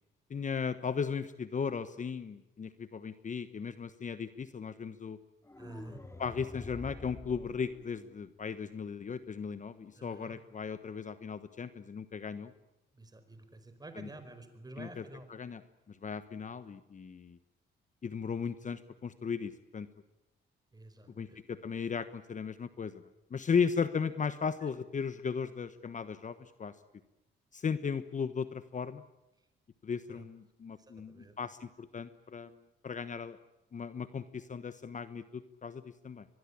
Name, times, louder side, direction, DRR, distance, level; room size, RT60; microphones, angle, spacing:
voice 1, 0.3-5.2 6.2-12.5 13.9-14.1 14.8-15.0 15.3-15.6 15.9-17.4 18.0-19.9 21.2-23.0 23.3-26.7 27.5-29.0 29.8-32.5 32.8-33.4 33.7-36.3, left 6 dB, 40° left, 12 dB, 1.2 m, -36 dB
sound 1, 5.4-8.4, left 1 dB, 15° left, 2.5 m, -48 dB
voice 2, 5.6-6.0 10.0-10.4 12.9-15.3 20.7-21.4 30.1-30.2 30.7-31.3, right 2 dB, 20° right, 9 dB, 5.0 m, -50 dB
24.0 x 21.5 x 10.0 m, 0.93 s
cardioid pair, 90°, 20 cm